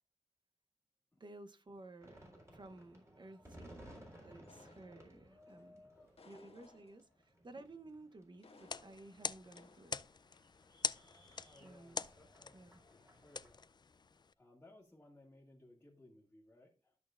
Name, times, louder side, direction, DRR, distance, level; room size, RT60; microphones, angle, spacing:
voice 1, 1.2-5.9 6.2-10.0 11.6-12.1 12.5-12.8, right 2 dB, 45° right, 0.9 m, -55 dB
sound 1, 2.0-13.5, equal, 25° right, 3.8 m, -59 dB
sound 2, 4.5-5.4 6.2-7.2 8.4-9.2 9.6-9.9, left 3 dB, 60° left, 1.7 m, -62 dB
voice 2, 5.5-6.3 11.4-12.6 13.1-13.6 14.4-16.9, left 2 dB, 15° left, 1.9 m, -63 dB
sound 3, 8.5-14.3, left 5 dB, 40° left, 0.4 m, -45 dB
13.0 x 6.5 x 2.5 m
wide cardioid pair, 90°, 11 cm